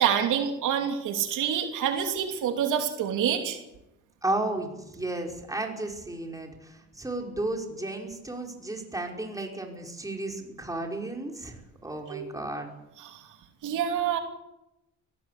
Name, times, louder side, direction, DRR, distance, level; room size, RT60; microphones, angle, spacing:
voice 1, 0.0-3.6 12.1-12.3 13.0-13.2 13.6-14.2, right 8 dB, 90° right, 4 dB, 2.9 m, -27 dB
voice 2, 4.2-12.7, right 2 dB, 10° right, 1 dB, 5.4 m, -33 dB
22.5 x 16.5 x 8.5 m, 0.92 s
cardioid pair, 90°, 30 cm